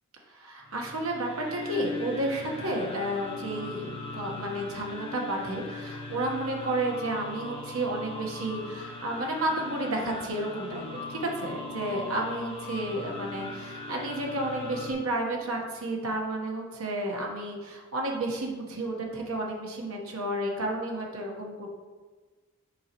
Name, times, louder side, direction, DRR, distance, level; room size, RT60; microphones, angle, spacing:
voice 1, 0.3-21.7, right 1 dB, 80° right, 0 dB, 1.2 m, -32 dB
sound 1, 0.7-14.9, left 2 dB, 25° left, 0.8 m, -39 dB
7.3 x 5.2 x 3.0 m, 1.4 s
head